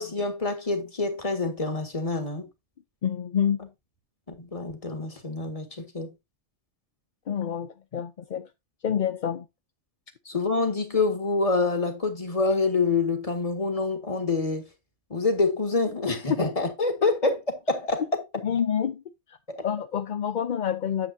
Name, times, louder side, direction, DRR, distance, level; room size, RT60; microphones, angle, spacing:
voice 1, 0.0-2.5 4.3-6.1 10.3-14.6 15.1-17.4 17.7-18.2 19.5-19.6, left 3 dB, 30° left, 1.9 m, -26 dB
voice 2, 3.0-3.7 7.3-8.5 8.8-9.5 18.4-19.0 19.3-19.4 19.6-21.1, left 8 dB, 50° left, 0.7 m, -28 dB
9.6 x 7.4 x 2.7 m
omnidirectional pair, 1.2 m